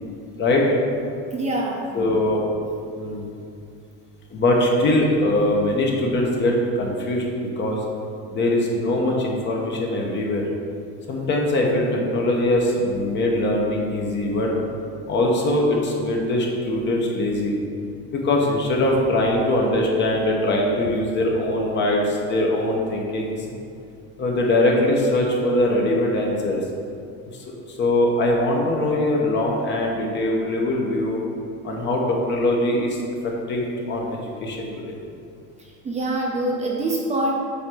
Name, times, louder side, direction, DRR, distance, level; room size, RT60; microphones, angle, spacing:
voice 1, 1.3-1.9 35.6-37.3, right 1 dB, 20° right, -2 dB, 0.7 m, -25 dB
voice 2, 1.9-2.4 2.9-3.3 4.3-7.2 7.6-7.8 8.3-10.4 11.1-14.5 15.1-17.6 18.1-23.3 24.2-26.6 27.3-31.2 31.6-33.0 33.2-35.0, left 1 dB, 35° left, -1 dB, 1.1 m, -22 dB
8.4 x 2.9 x 6.1 m, 2.5 s
cardioid pair, 145°, 33 cm